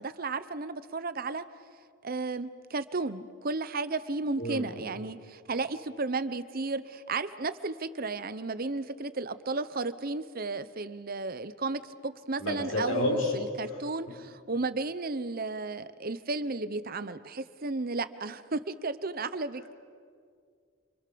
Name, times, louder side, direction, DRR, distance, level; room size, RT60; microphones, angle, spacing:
voice 1, 0.0-1.4 2.0-19.7, right 3 dB, 45° right, 13 dB, 0.8 m, -33 dB
voice 2, 4.4-4.7 12.4-13.3, left 1 dB, 75° left, 0 dB, 6.3 m, -29 dB
28.0 x 26.0 x 6.9 m, 2.1 s
head